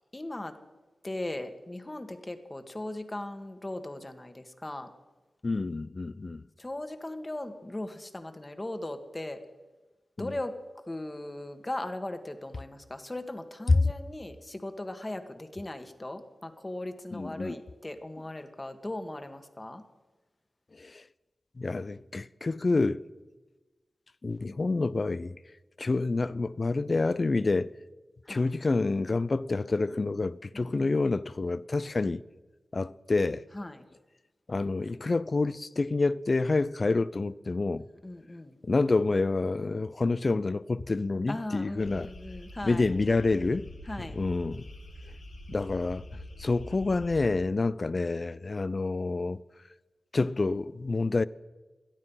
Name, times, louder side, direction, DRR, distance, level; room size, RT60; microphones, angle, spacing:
voice 1, 0.1-0.6 1.0-4.9 6.6-9.4 10.2-10.6 10.9-19.8 28.2-28.5 30.5-31.0 33.5-33.8 38.0-38.6 41.3-42.9 43.9-44.2, left 1 dB, 30° left, 1.8 m, -38 dB
voice 2, 5.4-6.4 10.2-10.3 13.7-13.8 17.1-17.6 20.8-21.0 21.6-23.0 24.2-25.4 25.8-27.7 28.3-32.2 32.7-33.4 34.5-37.9 38.6-42.1 42.6-43.7 44.1-44.7 45.5-46.0 46.4-49.4 50.1-51.2, left 3 dB, 50° left, 0.6 m, -28 dB
sound 1, 41.8-47.2, left 1 dB, 90° left, 5.6 m, -44 dB
17.5 x 12.0 x 5.7 m
cardioid pair, 40°, 0 cm